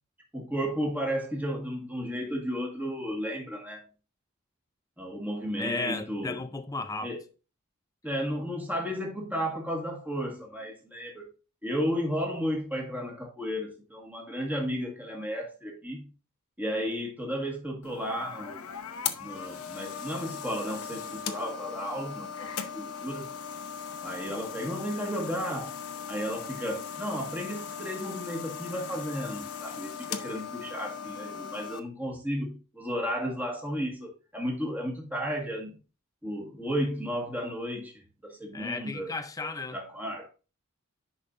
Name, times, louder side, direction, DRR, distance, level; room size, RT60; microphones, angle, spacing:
voice 1, 0.3-3.8 5.0-6.4 7.0-7.2 8.0-11.3 11.6-16.1 16.6-18.7 19.2-22.5 22.7-23.3 24.0-25.8 26.1-35.8 36.2-37.9 38.2-39.1 39.7-40.3, equal, 10° right, 1.7 m, -33 dB
voice 2, 5.6-7.1 38.5-39.8, left 3 dB, 15° left, 0.5 m, -34 dB
sound 1, 17.8-31.8, left 7 dB, 80° left, 0.9 m, -38 dB
10.5 x 5.2 x 2.6 m
head